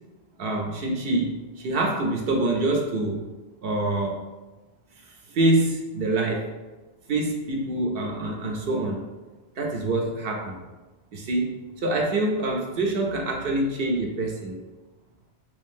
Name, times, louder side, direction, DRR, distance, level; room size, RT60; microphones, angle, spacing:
voice 1, 0.4-3.2 3.6-4.2 5.0-6.5 7.1-9.0 9.6-10.6 11.1-14.6, right 2 dB, 65° right, 1 dB, 0.7 m, -26 dB
3.1 x 2.6 x 3.5 m, 1.2 s
omnidirectional pair, 1.1 m